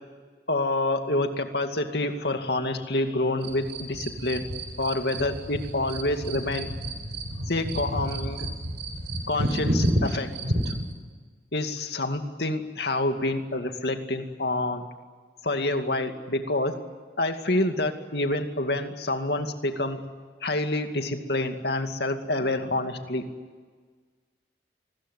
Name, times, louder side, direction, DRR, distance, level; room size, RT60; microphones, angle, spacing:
voice 1, 0.5-4.5 4.8-6.7 7.5-8.5 9.3-10.3 10.6-10.7 11.5-14.8 15.4-16.7 17.2-20.0 20.4-23.2, left 2 dB, 65° left, 6 dB, 2.4 m, -27 dB
sound 1, 3.4-10.9, right 1 dB, 85° right, 4.4 m, -30 dB
29.0 x 21.0 x 8.4 m, 1.5 s
head